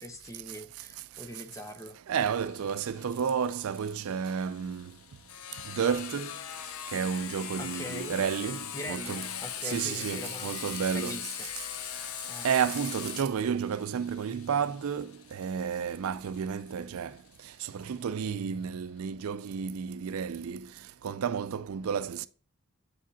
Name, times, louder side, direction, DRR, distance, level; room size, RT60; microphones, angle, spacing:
voice 1, 0.0-2.0 7.6-8.2 8.7-10.6 10.9-11.5 12.3-12.5, left 1 dB, 15° left, 0.7 m, -42 dB
voice 2, 2.1-4.9 5.7-6.3 6.9-9.3 9.6-11.3 12.4-17.2 17.6-20.7 21.0-22.3, right 7 dB, 80° right, 0.4 m, -31 dB
Sawing, 2.2-17.6, left 10 dB, 80° left, 0.6 m, -41 dB
8.1 x 4.9 x 2.7 m
head